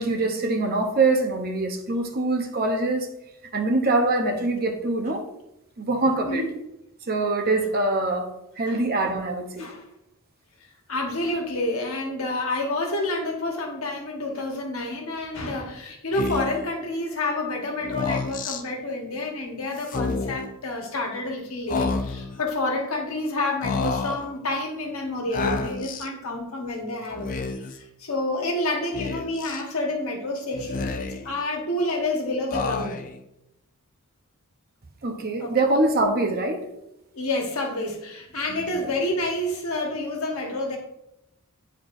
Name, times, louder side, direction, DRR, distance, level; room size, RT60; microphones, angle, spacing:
voice 1, 0.0-3.1 3.5-5.3 5.8-6.4 7.1-8.3 8.6-9.7 35.0-36.6 38.5-38.7, right 2 dB, 45° right, 0.8 m, -24 dB
voice 2, 6.2-6.5 8.7-8.8 9.6-9.8 10.9-27.3 27.7-33.0 35.4-35.5 37.1-40.8, left 2 dB, 70° left, 1.4 m, -29 dB
Speech, 16.1-16.7 17.8-18.6 19.8-20.5 21.7-22.4 23.6-24.3 25.3-26.1 27.1-27.8 28.9-29.6 30.5-31.4 32.5-33.2, left 4 dB, 40° left, 0.5 m, -29 dB
9.1 x 4.4 x 2.6 m
head